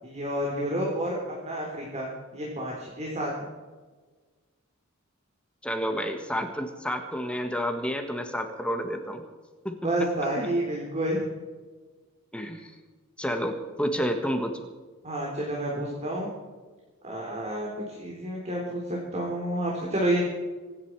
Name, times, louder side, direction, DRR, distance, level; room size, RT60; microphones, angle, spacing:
voice 1, 0.0-3.5 9.8-11.2 15.0-16.3 17.0-20.2, right 1 dB, 30° right, -2 dB, 3.7 m, -30 dB
voice 2, 5.6-9.2 9.6-10.1 12.3-12.7 13.2-14.6, equal, 5° left, 5 dB, 1.5 m, -30 dB
25.5 x 11.0 x 4.7 m, 1.3 s
head